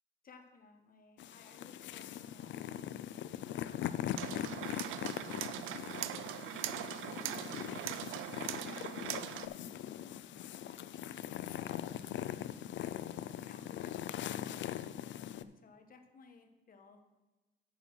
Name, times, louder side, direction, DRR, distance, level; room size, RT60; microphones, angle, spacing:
voice 1, 0.2-3.0 3.7-6.9 7.2-8.0 8.6-12.6 13.4-17.0, left 4 dB, 45° left, 6 dB, 1.2 m, -61 dB
sound 1, 1.2-15.4, left 11 dB, 70° left, 0.4 m, -41 dB
sound 2, 4.2-9.5, right 13 dB, 90° right, 0.4 m, -41 dB
9.6 x 4.1 x 6.1 m, 1.1 s
cardioid pair, 90°, 20 cm